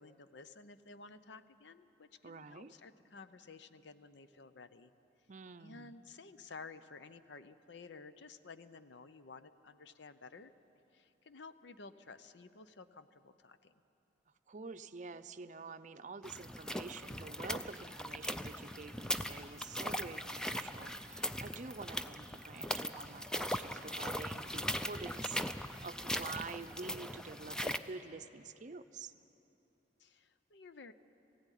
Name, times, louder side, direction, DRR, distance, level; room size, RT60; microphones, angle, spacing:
voice 1, 0.0-4.9 5.6-10.5 10.9-13.7 30.0-30.9, left 4 dB, 70° left, 12 dB, 0.7 m, -53 dB
voice 2, 2.2-2.7 5.3-5.9 14.5-29.1, right 4 dB, 40° right, 10 dB, 0.6 m, -48 dB
sound 1, 16.2-27.8, equal, 5° left, 0.5 m, -40 dB
18.5 x 15.5 x 10.0 m, 2.9 s
head